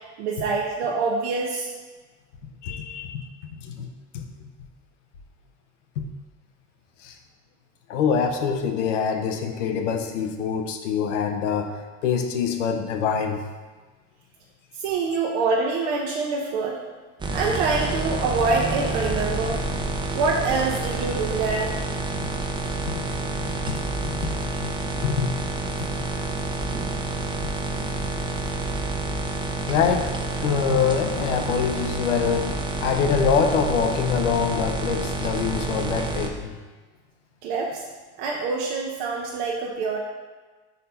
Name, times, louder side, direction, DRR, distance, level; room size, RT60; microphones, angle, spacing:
voice 1, 0.2-1.7 14.8-16.8 17.3-19.6 20.1-21.8 37.4-37.8 38.2-40.0, right 4 dB, 65° right, -2 dB, 0.9 m, -25 dB
voice 2, 2.6-3.1 3.6-3.9 4.1-4.3 7.0-7.1 7.9-11.7 12.0-13.4 23.7-23.8 24.2-24.3 25.0-25.4 25.8-25.9 29.7-30.1 30.4-36.6, left 6 dB, 85° left, 5 dB, 0.8 m, -24 dB
sound 1, 17.2-36.3, right 2 dB, 15° right, 0.5 m, -28 dB
4.2 x 4.2 x 5.3 m, 1.3 s
hypercardioid pair, 95°, 36 cm